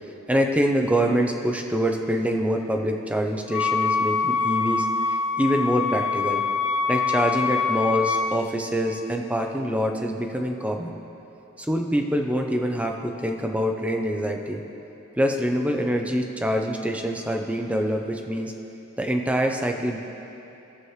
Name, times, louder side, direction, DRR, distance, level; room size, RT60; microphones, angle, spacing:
voice 1, 0.3-4.9 5.4-6.4 6.9-11.0 11.6-14.6 15.2-18.5 19.0-20.0, equal, 5° right, 2 dB, 0.5 m, -25 dB
Wind instrument woodwind instrument, 3.5-8.4, left 5 dB, 60° left, 0.4 m, -24 dB
17.5 x 6.3 x 3.2 m, 3.0 s
head